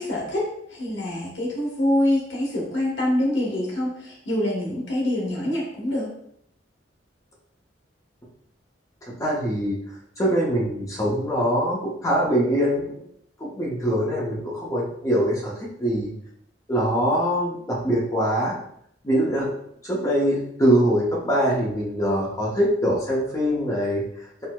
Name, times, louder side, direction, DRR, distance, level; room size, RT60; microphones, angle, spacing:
voice 1, 0.0-6.1, left 1 dB, 80° left, -3 dB, 1.2 m, -25 dB
voice 2, 9.2-9.8 10.2-12.9 13.4-15.5 15.8-16.1 16.7-18.6 19.0-19.5 19.8-24.5, equal, 20° left, -4 dB, 0.6 m, -23 dB
4.3 x 2.0 x 2.2 m, 0.70 s
head